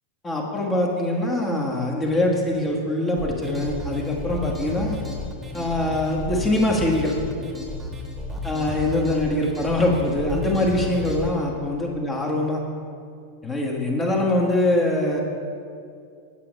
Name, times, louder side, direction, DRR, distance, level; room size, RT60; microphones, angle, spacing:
voice 1, 0.2-5.0 5.5-7.1 8.4-12.6 13.4-15.2, left 1 dB, 15° left, -1 dB, 1.3 m, -23 dB
sound 1, 3.2-11.3, left 1 dB, 10° right, 1.3 m, -33 dB
9.0 x 5.8 x 5.2 m, 2.4 s
figure-of-eight pair, 90°, 0 cm